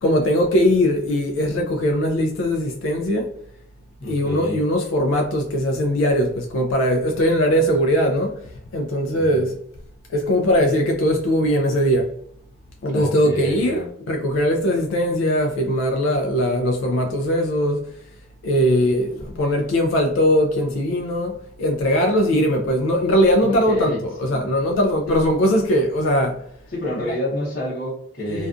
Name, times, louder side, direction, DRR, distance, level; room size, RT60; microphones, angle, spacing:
voice 1, 0.0-3.3 4.0-8.4 8.7-9.6 10.1-12.1 12.8-17.9 18.4-26.4 28.3-28.5, equal, 80° left, 0.3 m, -20 dB
voice 2, 4.0-4.6 9.1-9.6 12.9-13.8 23.4-24.0 24.3-24.5 25.1-25.2 26.7-28.5, left 1 dB, 50° left, 0.7 m, -28 dB
2.3 x 2.3 x 2.4 m
head